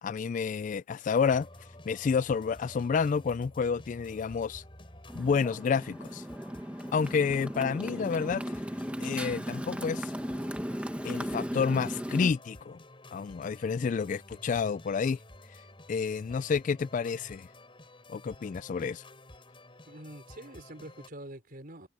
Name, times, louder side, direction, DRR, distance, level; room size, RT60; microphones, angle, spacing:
voice 1, 0.0-1.5 1.9-4.6 5.1-6.2 6.9-8.4 9.0-10.1 11.0-12.8 13.1-15.2 15.9-17.5 18.1-19.0, left 5 dB, 45° left, 0.3 m, -29 dB
sound 1, 1.3-21.1, left 1 dB, 30° left, 5.7 m, -52 dB
Motorcycle, 5.1-12.3, equal, 5° right, 1.2 m, -36 dB
voice 2, 19.9-21.9, right 1 dB, 50° right, 4.7 m, -45 dB
head